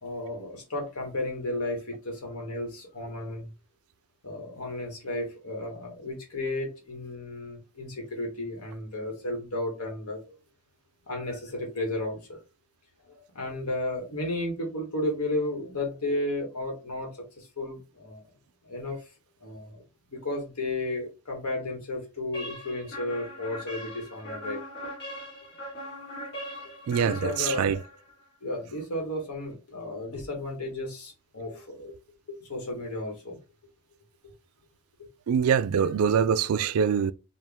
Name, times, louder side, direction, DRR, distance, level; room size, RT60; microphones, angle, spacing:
voice 1, 0.0-3.5 4.2-10.3 11.1-12.4 13.0-17.1 17.4-18.2 18.6-19.0 19.4-19.8 20.1-24.6 27.0-27.8 28.4-31.9 32.4-33.4, left 1 dB, 80° left, 1.5 m, -33 dB
sound 1, 22.3-28.2, equal, 50° left, 2.2 m, -40 dB
voice 2, 26.9-27.8 35.3-37.1, right 7 dB, 75° right, 0.3 m, -24 dB
4.4 x 2.5 x 3.5 m
head